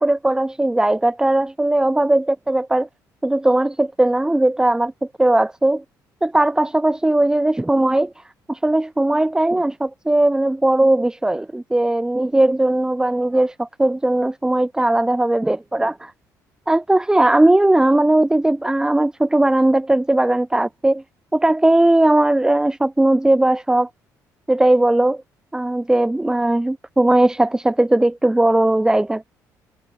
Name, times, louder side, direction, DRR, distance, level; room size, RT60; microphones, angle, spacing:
voice 1, 0.0-2.9 3.2-4.9 5.2-5.8 6.2-8.1 8.5-16.1 16.7-21.0 21.3-23.9 24.5-25.2 25.5-29.4, right 1 dB, 10° right, 6.4 m, -18 dB
cardioid pair, 100°, 7 cm